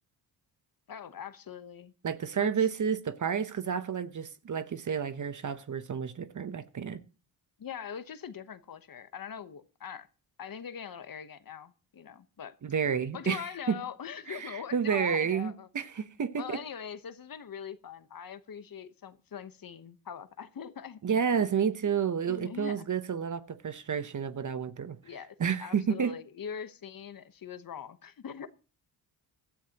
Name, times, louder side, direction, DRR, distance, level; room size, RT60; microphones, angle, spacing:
voice 1, 0.9-1.9 2.4-2.5 7.6-10.1 10.4-12.6 13.1-15.7 16.4-21.0 22.3-22.9 25.0-28.5, left 7 dB, 50° left, 1.1 m, -42 dB
voice 2, 2.0-7.0 12.6-13.4 13.7-13.8 14.3-16.6 21.0-25.0 25.4-26.1, right 7 dB, 40° right, 0.9 m, -30 dB
16.5 x 12.5 x 2.9 m
cardioid pair, 80°, 45 cm